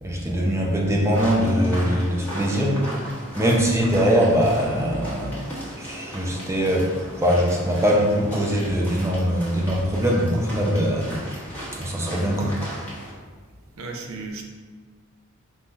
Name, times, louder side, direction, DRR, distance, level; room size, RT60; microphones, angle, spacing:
voice 1, 0.0-2.8 3.4-5.5 5.8-12.6, equal, 15° right, -2 dB, 0.6 m, -22 dB
sound 1, 1.1-13.1, equal, 10° left, 1.2 m, -37 dB
voice 2, 13.8-14.4, right 3 dB, 85° right, 2 dB, 0.6 m, -34 dB
3.6 x 2.7 x 4.4 m, 1.4 s
head